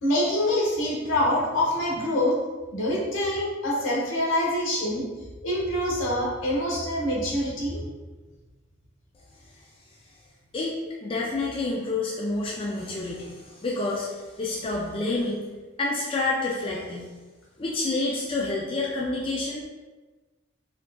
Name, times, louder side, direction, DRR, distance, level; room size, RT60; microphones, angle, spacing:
voice 1, 0.0-2.4 2.7-5.0 5.4-7.8, left 1 dB, 75° left, -4 dB, 1.0 m, -25 dB
voice 2, 10.5-15.5 15.8-17.1 17.6-19.6, left 2 dB, 25° left, -4 dB, 0.3 m, -28 dB
4.3 x 2.6 x 2.3 m, 1.3 s
head